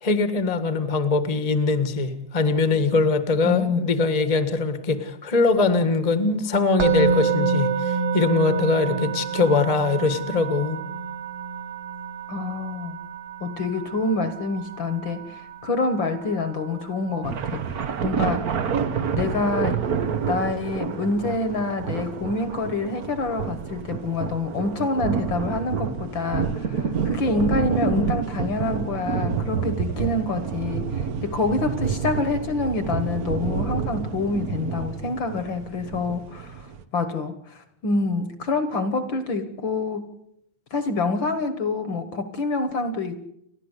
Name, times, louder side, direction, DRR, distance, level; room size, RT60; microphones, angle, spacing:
voice 1, 0.0-10.8, left 3 dB, 20° left, 10 dB, 1.0 m, -22 dB
voice 2, 3.4-3.9 12.3-13.0 13.4-17.6 18.0-18.6 19.1-19.9 20.3-40.1 40.7-43.3, left 3 dB, 50° left, 10 dB, 1.6 m, -27 dB
Musical instrument, 6.8-17.9, right 5 dB, 60° right, 2.5 m, -28 dB
sound 1, 17.2-36.8, right 6 dB, 75° right, 0.8 m, -28 dB
30.0 x 12.0 x 8.2 m, 0.76 s
omnidirectional pair, 3.3 m